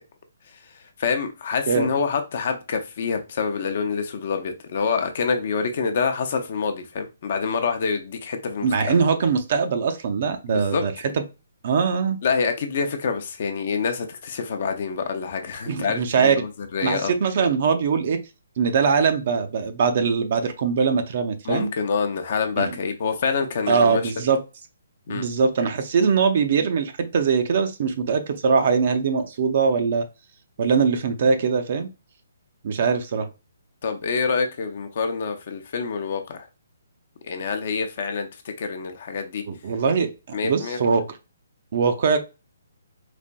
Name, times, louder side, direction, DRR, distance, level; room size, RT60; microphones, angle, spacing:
voice 1, 1.0-9.0 10.5-10.8 12.2-17.1 21.4-24.0 25.1-25.3 33.8-36.5 37.2-39.4 40.3-40.8, left 5 dB, 50° left, 0.6 m, -26 dB
voice 2, 8.6-11.2 11.6-12.2 15.7-16.4 16.8-18.2 18.6-21.7 22.6-22.7 23.7-24.4 25.1-30.1 30.6-31.9 32.6-33.3 39.5-41.2 41.7-42.2, right 5 dB, 45° right, 0.6 m, -22 dB
4.2 x 2.5 x 2.2 m
figure-of-eight pair, 135°, 0 cm